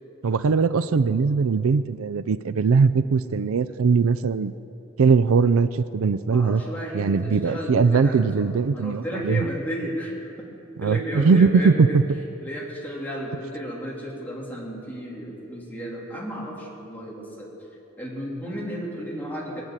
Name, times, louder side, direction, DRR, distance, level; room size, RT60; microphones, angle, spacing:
voice 1, 0.2-4.5 5.0-6.6 6.9-9.5 10.8-12.0, right 5 dB, 80° right, 14 dB, 0.4 m, -20 dB
voice 2, 6.3-10.1 10.8-12.0 12.4-17.5 18.0-19.6, equal, 10° left, -4 dB, 3.0 m, -33 dB
22.5 x 8.0 x 7.4 m, 2.8 s
head